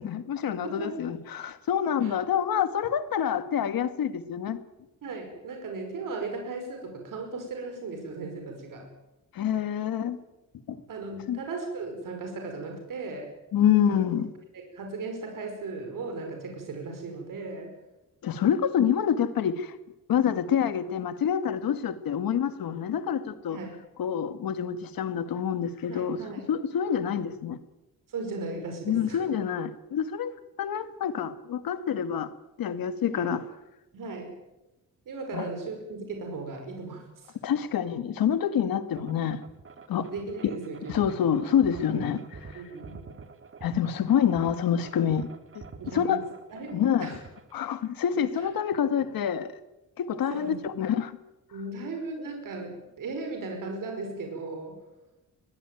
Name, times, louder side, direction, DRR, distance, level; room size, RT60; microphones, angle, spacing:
voice 1, 0.1-4.6 9.3-10.2 10.7-10.8 11.3-11.4 13.5-14.3 18.2-19.8 20.1-23.6 24.0-26.2 26.5-27.6 28.9-30.3 30.6-32.3 32.6-33.4 35.3-35.5 37.4-39.4 39.9-40.1 40.9-42.2 42.5-42.6 43.6-45.3 45.5-45.6 45.9-46.2 46.7-47.1 47.5-49.5 50.0-51.2, left 8 dB, 85° left, 1.8 m, -27 dB
voice 2, 0.6-1.0 2.0-2.1 5.0-8.9 10.9-13.3 14.5-17.7 23.5-23.8 25.9-26.5 28.1-29.2 33.1-33.3 33.9-34.4 35.1-37.3 40.1-41.1 41.9-42.0 42.5-43.0 45.8-46.2 46.5-47.2 48.4-48.5 50.3-50.6 51.5-54.8, right 3 dB, 65° right, 5.3 m, -37 dB
sound 1, 39.0-47.9, right 4 dB, 40° right, 2.4 m, -47 dB
22.5 x 17.0 x 9.1 m
wide cardioid pair, 170°, 34 cm